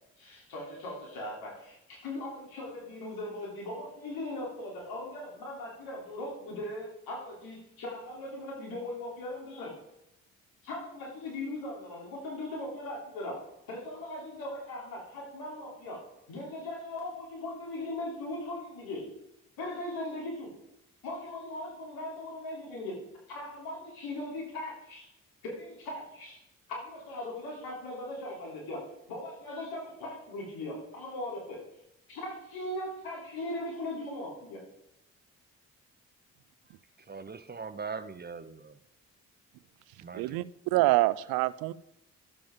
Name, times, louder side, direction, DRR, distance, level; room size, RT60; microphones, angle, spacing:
voice 1, 0.2-9.7 10.6-13.4 13.7-16.0 16.3-19.1 19.6-20.6 21.0-23.0 23.3-25.1 25.4-26.4 26.7-31.6 32.1-34.6, left 1 dB, 85° left, -2 dB, 3.3 m, -39 dB
voice 2, 37.1-38.8 40.0-40.4, right 5 dB, 30° right, 13 dB, 0.7 m, -41 dB
voice 3, 40.1-41.7, right 18 dB, 85° right, 18 dB, 0.5 m, -26 dB
12.0 x 7.6 x 3.7 m, 0.83 s
supercardioid pair, 50°, 36 cm